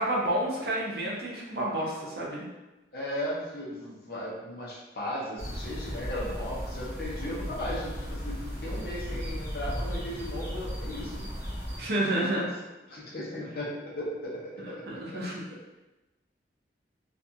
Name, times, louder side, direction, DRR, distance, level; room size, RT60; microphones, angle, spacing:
voice 1, 0.0-2.4 11.8-12.5 14.6-15.4, right 1 dB, 60° right, -3 dB, 0.6 m, -30 dB
voice 2, 2.9-11.2 12.3-12.5 12.9-14.8 15.1-15.2, left 1 dB, 55° left, -5 dB, 0.7 m, -36 dB
sound 1, 5.4-11.8, equal, 15° right, 0.6 m, -35 dB
2.5 x 2.4 x 2.7 m, 1.1 s
head